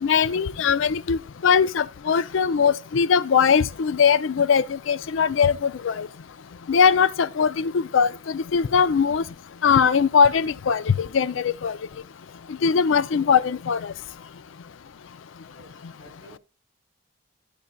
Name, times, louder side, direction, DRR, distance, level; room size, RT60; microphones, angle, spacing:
voice 1, 0.0-6.1 6.7-9.2 9.6-11.8 12.6-13.9, left 6 dB, 75° left, 0.4 m, -21 dB
voice 2, 15.5-16.4, right 1 dB, 20° right, 5.9 m, -51 dB
12.5 x 7.1 x 2.2 m
head